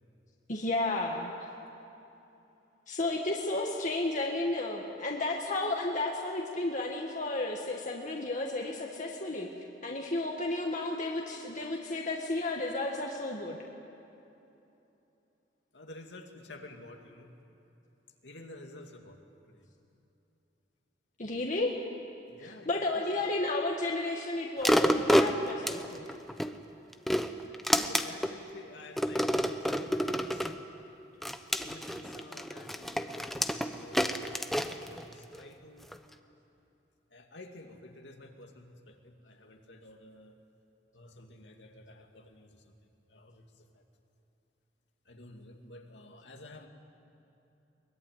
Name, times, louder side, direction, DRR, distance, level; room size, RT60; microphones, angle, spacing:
voice 1, 0.5-1.5 2.9-9.5 9.8-13.6 21.2-21.8 22.4-26.1, left 2 dB, 45° left, 0 dB, 1.7 m, -32 dB
voice 2, 15.7-17.3 18.2-19.2 19.5-19.6 22.3-22.8 23.1-23.2 27.7-30.5 31.6-35.9 37.1-40.3 40.9-42.7 43.1-43.8 45.1-46.7, left 2 dB, 90° left, 3 dB, 2.4 m, -51 dB
sound 1, 24.6-26.5 26.9-28.4 29.0-30.6 31.2-35.4 35.9-36.0, equal, ahead, 0.9 m, -29 dB
23.0 x 21.5 x 9.4 m, 2.9 s
head